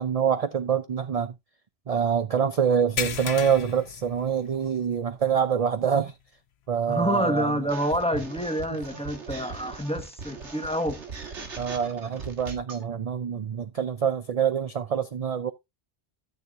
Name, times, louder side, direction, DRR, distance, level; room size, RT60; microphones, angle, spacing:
voice 1, 0.0-1.3 1.9-6.1 6.7-7.6 11.6-15.5, right 7 dB, 45° right, 0.5 m, -26 dB
sound 1, 3.0-4.8 5.2-5.4 5.9-6.0 7.6-7.7, left 7 dB, 65° left, 1.0 m, -34 dB
voice 2, 6.9-11.0, equal, 5° left, 1.2 m, -27 dB
sound 2, 7.7-12.8, right 4 dB, 80° right, 2.0 m, -39 dB
13.0 x 7.1 x 2.5 m
omnidirectional pair, 1.2 m